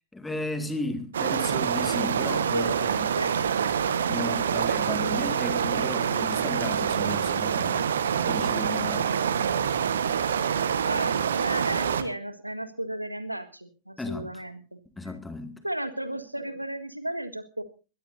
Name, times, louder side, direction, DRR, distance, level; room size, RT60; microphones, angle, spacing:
voice 1, 0.1-3.1 4.1-7.9 8.2-9.1 14.0-14.3 15.0-15.6, left 2 dB, 10° left, 2.2 m, -34 dB
sound 1, 1.1-12.0, right 7 dB, 65° right, 1.3 m, -26 dB
voice 2, 2.1-3.4 10.9-14.8 15.6-17.6, right 1 dB, 85° right, 1.6 m, -34 dB
22.0 x 16.0 x 2.7 m
figure-of-eight pair, 90°, 0 cm